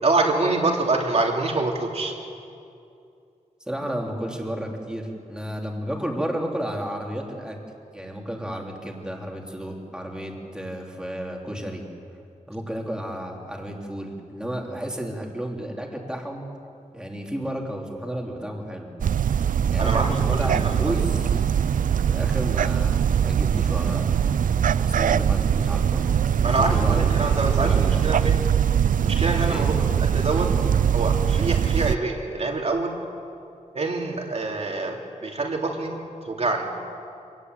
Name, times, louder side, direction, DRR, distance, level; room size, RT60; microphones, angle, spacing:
voice 1, 0.0-2.2 19.8-20.9 26.4-28.4 29.0-30.5 30.9-32.9 33.7-36.0 36.2-36.7, right 3 dB, 50° right, 1 dB, 3.0 m, -26 dB
voice 2, 3.7-7.6 7.9-11.8 12.5-16.4 16.9-18.9 19.7-21.4 21.9-24.1 24.7-26.0 26.4-28.0 29.5-29.7, equal, 5° right, 0 dB, 3.1 m, -32 dB
sound 1, 19.0-32.0, right 8 dB, 80° right, 0.5 m, -22 dB
25.5 x 18.5 x 8.1 m, 2.5 s
wide cardioid pair, 140°, 14 cm